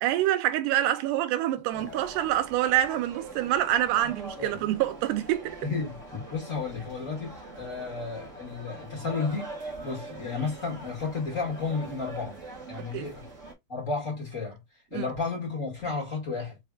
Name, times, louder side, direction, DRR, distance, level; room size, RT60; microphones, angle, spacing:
voice 1, 0.0-5.6 12.8-13.1 14.9-15.1, right 13 dB, 80° right, 2.3 m, -26 dB
sound 1, 1.7-13.5, right 2 dB, 30° right, 1.7 m, -43 dB
voice 2, 5.6-9.5 9.8-12.4 12.7-13.3 13.7-14.6 14.9-16.6, left 4 dB, 30° left, 1.8 m, -33 dB
5.1 x 3.4 x 2.3 m
omnidirectional pair, 3.6 m